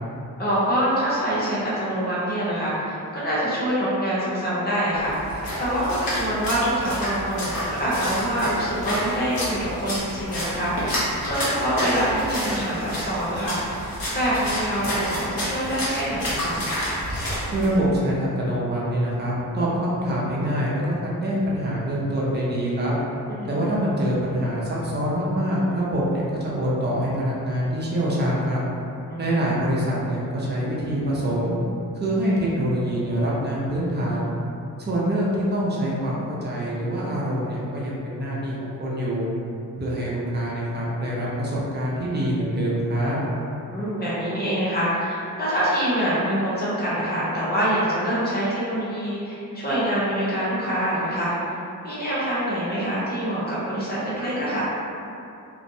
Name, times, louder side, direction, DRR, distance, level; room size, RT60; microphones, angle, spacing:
voice 1, 0.4-5.1 5.6-13.6 14.1-16.6 23.3-23.6 29.1-29.4 43.7-51.3 51.8-54.6, equal, 30° left, -9 dB, 0.7 m, -25 dB
Splash splatter, 5.0-17.7, equal, 85° left, 0.9 m, -29 dB
voice 2, 17.5-22.9 23.4-28.6 29.2-31.6 31.9-34.3 34.8-39.3 39.8-43.2, equal, 30° right, -6 dB, 0.4 m, -25 dB
2.6 x 2.0 x 2.6 m, 2.6 s
wide cardioid pair, 180°, 34 cm